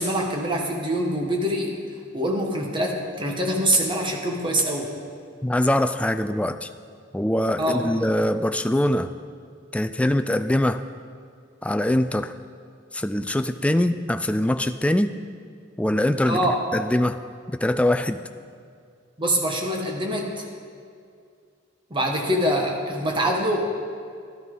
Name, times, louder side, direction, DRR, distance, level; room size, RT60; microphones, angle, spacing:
voice 1, 0.0-1.7 2.1-4.9 7.6-8.0 16.3-16.6 19.2-20.5 21.9-23.7, equal, 25° right, 1 dB, 1.4 m, -24 dB
voice 2, 5.4-6.7 7.1-9.1 9.7-10.8 11.6-12.3 12.9-15.2 15.8-16.4 16.7-17.2 17.6-18.2, left 1 dB, 5° left, 10 dB, 0.3 m, -23 dB
12.5 x 12.0 x 3.9 m, 2.3 s
head